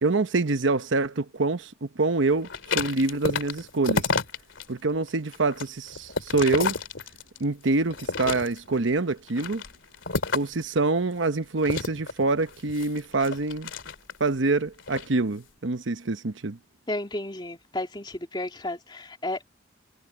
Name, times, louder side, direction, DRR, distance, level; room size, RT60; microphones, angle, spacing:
voice 1, 0.0-2.5 2.7-4.1 4.7-6.8 7.4-9.6 10.3-13.7 14.2-16.6, right 3 dB, 80° right, 0.9 m, -26 dB
sound 1, 2.4-4.6 5.1-7.4 7.9-8.8 9.3-10.6 11.6-14.3 14.8-15.1, left 4 dB, 85° left, 2.5 m, -30 dB
voice 2, 16.9-19.4, left 1 dB, 25° left, 2.8 m, -32 dB
head